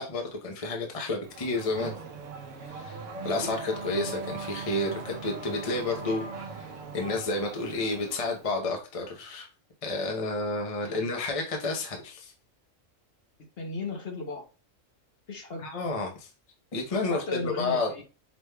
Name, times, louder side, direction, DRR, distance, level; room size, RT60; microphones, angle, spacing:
voice 1, 0.0-2.0 2.7-9.5 9.8-12.3 15.6-16.3 16.7-17.9, left 2 dB, 35° left, 2 dB, 0.7 m, -31 dB
Race car auto racing / Accelerating revving vroom, 1.2-8.5, right 4 dB, 75° right, 1.0 m, -39 dB
voice 2, 13.6-14.4 15.3-15.7 17.1-18.0, left 3 dB, 55° left, 2 dB, 1.1 m, -35 dB
5.1 x 3.3 x 2.2 m, 0.32 s
omnidirectional pair, 1.4 m